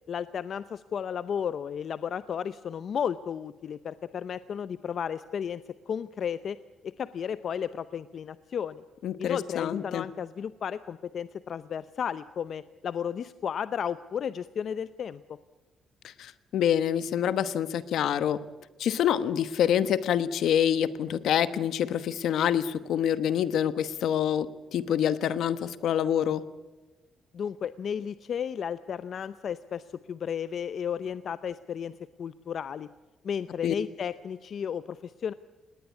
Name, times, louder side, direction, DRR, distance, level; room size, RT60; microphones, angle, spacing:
voice 1, 0.1-6.6 6.8-8.8 9.2-15.2 27.3-32.9 33.2-35.3, left 8 dB, 55° left, 14 dB, 0.6 m, -33 dB
voice 2, 9.0-10.0 16.2-18.4 18.8-26.4 33.6-33.7, left 9 dB, 75° left, 14 dB, 1.1 m, -26 dB
19.5 x 19.0 x 8.4 m, 1.2 s
cardioid pair, 90°, 0 cm